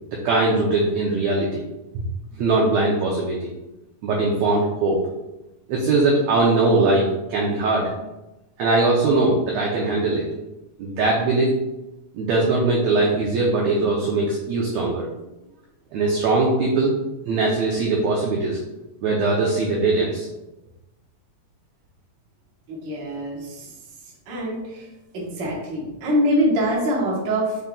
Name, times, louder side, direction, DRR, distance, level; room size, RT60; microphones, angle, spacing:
voice 1, 0.1-1.6 2.3-3.5 4.0-5.0 5.7-7.9 8.6-10.2 10.8-11.5 12.1-15.1 15.9-17.0 17.3-18.6 19.0-20.3, right 3 dB, 85° right, -2 dB, 1.5 m, -21 dB
voice 2, 22.7-23.7 24.3-24.9 25.1-27.6, equal, 65° right, -4 dB, 1.1 m, -24 dB
5.5 x 3.6 x 2.2 m, 0.97 s
omnidirectional pair, 3.8 m